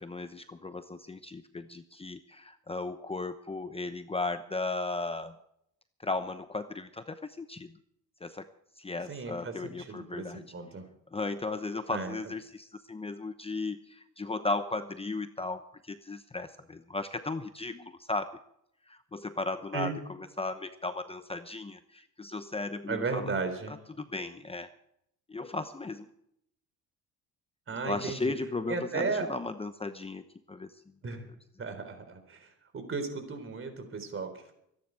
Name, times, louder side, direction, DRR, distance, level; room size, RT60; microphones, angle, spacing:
voice 1, 0.0-5.4 6.0-7.8 8.2-8.5 8.8-10.4 11.1-18.3 18.9-19.9 20.2-23.3 23.7-24.7 25.3-26.1 27.8-30.7, left 3 dB, 15° left, 10 dB, 0.9 m, -36 dB
voice 2, 9.1-10.2 10.5-10.8 11.9-12.1 19.7-19.9 22.9-23.7 27.7-28.3 28.7-29.3 31.0-31.3 31.6-34.5, right 4 dB, 40° right, 8 dB, 3.9 m, -35 dB
24.0 x 10.5 x 4.7 m, 0.74 s
cardioid pair, 90°, 33 cm